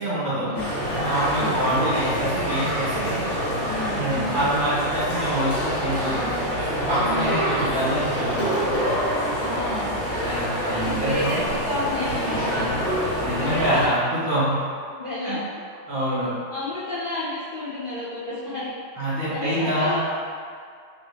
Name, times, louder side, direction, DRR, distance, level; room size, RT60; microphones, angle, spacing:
voice 1, 0.0-0.5 0.9-3.2 3.9-6.2 6.9-8.5 10.1-11.5 12.5-12.9 13.2-14.6 15.2-15.4 15.9-16.3 19.0-20.0, right 1 dB, 85° right, -12 dB, 2.1 m, -26 dB
sound 1, 0.5-13.9, equal, 45° left, 1.2 m, -26 dB
voice 2, 3.6-4.5 7.0-7.4 9.4-10.0 10.7-12.9 13.3-14.3 14.9-15.4 16.5-20.1, left 2 dB, 65° left, -11 dB, 0.5 m, -31 dB
4.5 x 2.6 x 3.3 m, 2.2 s
omnidirectional pair, 2.1 m